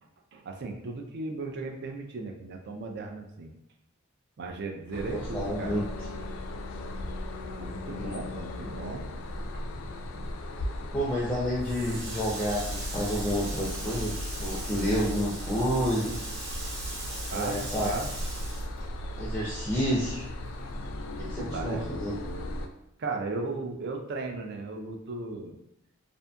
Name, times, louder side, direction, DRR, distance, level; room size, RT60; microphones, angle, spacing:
voice 1, 0.3-3.5 4.4-5.8 7.6-9.1 9.3-9.4 10.6-10.7 17.3-18.1 19.0-19.1 20.8-20.9 21.4-21.9 23.0-25.6, right 3 dB, 55° right, 3 dB, 0.4 m, -36 dB
sound 1, 4.9-22.7, left 1 dB, 80° left, 0.3 m, -36 dB
voice 2, 5.1-5.8 8.0-8.2 10.9-16.2 17.3-17.9 19.2-20.2 21.2-22.2, equal, 10° left, -7 dB, 0.4 m, -30 dB
Water tap faucet, 11.6-19.5 19.8-21.1, right 2 dB, 90° right, 0.8 m, -40 dB
2.6 x 2.6 x 2.2 m, 0.82 s
head